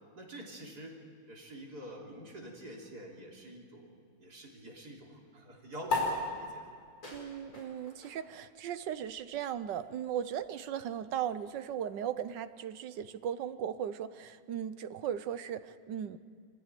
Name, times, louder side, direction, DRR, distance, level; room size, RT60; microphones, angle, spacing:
voice 1, 0.1-0.9 1.3-3.9 4.2-6.7, right 1 dB, 50° right, -1 dB, 3.7 m, -47 dB
sound 1, 5.9-12.7, left 3 dB, 45° left, 5.3 m, -40 dB
voice 2, 7.1-16.2, right 9 dB, 65° right, 12 dB, 1.4 m, -37 dB
24.5 x 15.0 x 9.1 m, 2.2 s
omnidirectional pair, 2.2 m